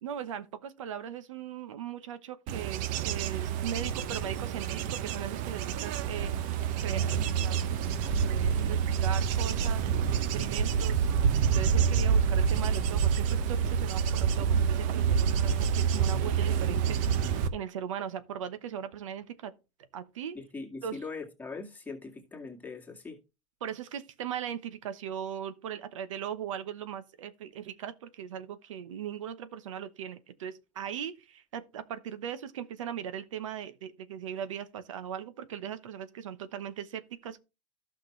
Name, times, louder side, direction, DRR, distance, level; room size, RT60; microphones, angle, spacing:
voice 1, 0.0-7.6 8.0-9.9 10.2-11.1 11.5-19.5 19.9-20.4 20.8-21.0 23.6-37.4, right 9 dB, 90° right, 1.0 m, -39 dB
Bird / Insect / Wind, 2.5-17.5, right 7 dB, 55° right, 0.9 m, -27 dB
voice 2, 20.3-23.2, left 4 dB, 10° left, 2.0 m, -41 dB
12.0 x 6.0 x 3.2 m
supercardioid pair, 115°, 16 cm